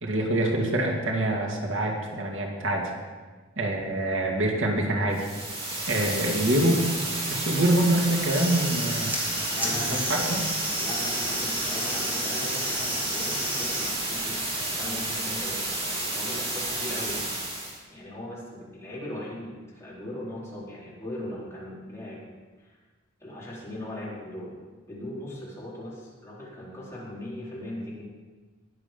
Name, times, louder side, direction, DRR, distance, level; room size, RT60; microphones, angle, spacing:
voice 1, 0.0-2.9 3.6-5.2 5.9-6.8 7.3-9.2 9.9-10.5, right 1 dB, 80° right, 0 dB, 2.2 m, -25 dB
sound 1, 5.1-17.8, right 2 dB, 30° right, 3.0 m, -31 dB
sound 2, 8.2-13.9, equal, 10° right, 2.7 m, -33 dB
voice 2, 9.5-10.2 10.8-14.4 14.6-17.2 17.9-22.2 22.6-22.7 23.2-24.5 24.9-28.0, left 1 dB, 15° left, -7 dB, 4.2 m, -39 dB
20.0 x 7.6 x 5.3 m, 1.3 s
head